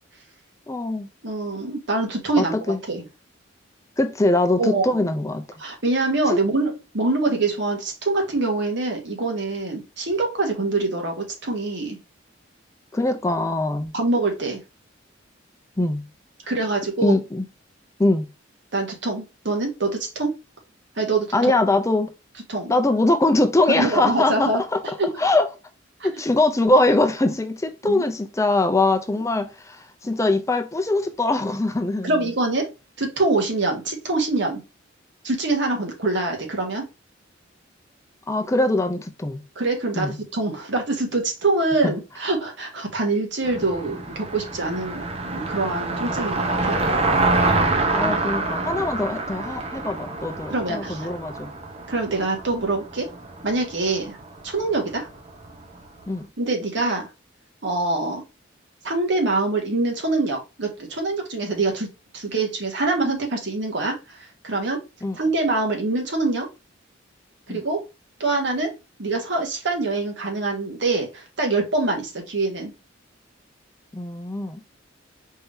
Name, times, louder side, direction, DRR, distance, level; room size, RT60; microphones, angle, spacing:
voice 1, 0.7-1.1 2.4-2.8 4.0-5.4 6.3-6.4 12.9-13.9 15.8-16.1 17.0-17.5 18.0-18.3 21.3-22.1 22.7-25.5 26.0-32.2 38.3-39.4 40.0-40.2 41.8-41.9 47.9-51.5 56.1-56.3 65.0-65.2 67.5-67.6 73.9-74.6, left 2 dB, 15° left, 0.5 m, -22 dB
voice 2, 1.2-2.6 2.9-3.0 4.6-5.0 5.6-12.0 13.9-14.6 16.5-17.2 18.7-20.3 21.0-21.5 22.5-22.7 23.8-24.6 25.0-25.1 26.0-26.1 27.9-28.0 32.0-32.7 33.0-34.6 35.2-36.8 39.5-46.8 50.5-51.1 51.9-53.1 53.4-54.2 54.4-55.1 56.4-57.1 57.6-58.2 58.8-61.9 62.1-64.2 64.4-64.8 65.2-66.5 67.5-67.8 68.2-68.7 69.0-72.7, right 2 dB, 65° right, 1.6 m, -24 dB
Car passing by, 43.4-55.8, right 2 dB, 30° right, 0.8 m, -26 dB
4.5 x 3.5 x 2.7 m
head